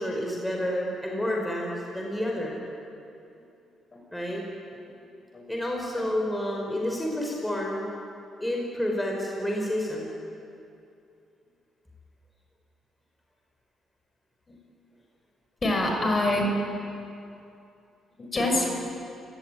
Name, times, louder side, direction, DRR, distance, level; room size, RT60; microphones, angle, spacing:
voice 1, 0.0-2.6 4.1-4.4 5.5-7.8 8.4-10.1 18.3-18.7, left 1 dB, 5° left, -1 dB, 5.3 m, -29 dB
voice 2, 15.6-16.5 18.2-18.7, left 1 dB, 30° left, 2 dB, 6.3 m, -26 dB
29.5 x 18.0 x 9.6 m, 2.6 s
cardioid pair, 90°, 0 cm